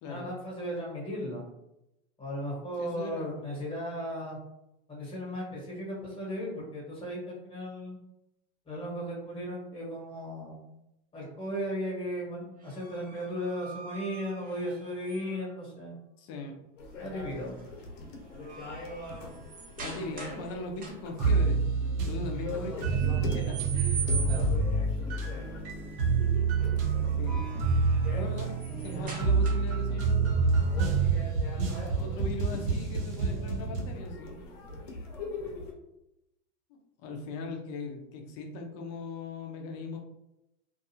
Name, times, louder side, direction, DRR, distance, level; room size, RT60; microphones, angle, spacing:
voice 1, 0.1-1.4 2.2-4.4 4.9-8.0 8.7-10.7 11.1-15.9 17.0-17.6 22.2-22.3 24.2-24.5, equal, 15° left, -4 dB, 1.1 m, -36 dB
voice 2, 2.8-3.5 16.2-16.6 19.8-21.7 22.0-24.1 27.2-27.4 28.1-31.1 31.5-31.6 32.0-34.4 36.7-40.0, left 2 dB, 40° left, 2 dB, 0.6 m, -40 dB
sound 1, 12.6-15.5 17.3-17.6 18.0-20.5 20.8-21.3 22.8-24.7 27.0-29.9, right 5 dB, 25° right, 0.6 m, -42 dB
sound 2, 16.8-35.7, left 2 dB, 80° left, 0.8 m, -41 dB
sound 3, 21.2-34.0, right 4 dB, 65° right, 0.9 m, -28 dB
2.6 x 2.4 x 2.7 m, 0.89 s
supercardioid pair, 125°, 37 cm